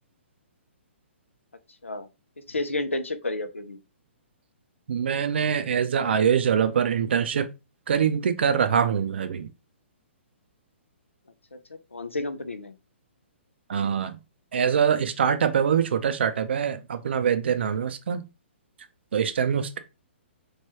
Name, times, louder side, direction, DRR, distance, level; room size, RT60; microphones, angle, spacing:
voice 1, 2.5-3.8 11.5-11.6 11.9-12.7, left 2 dB, 90° left, 0.4 m, -31 dB
voice 2, 4.9-7.5 7.9-9.5 13.7-14.2 14.5-18.2 19.1-19.8, right 7 dB, 60° right, 0.4 m, -24 dB
3.1 x 2.2 x 3.0 m
figure-of-eight pair, 125°, 7 cm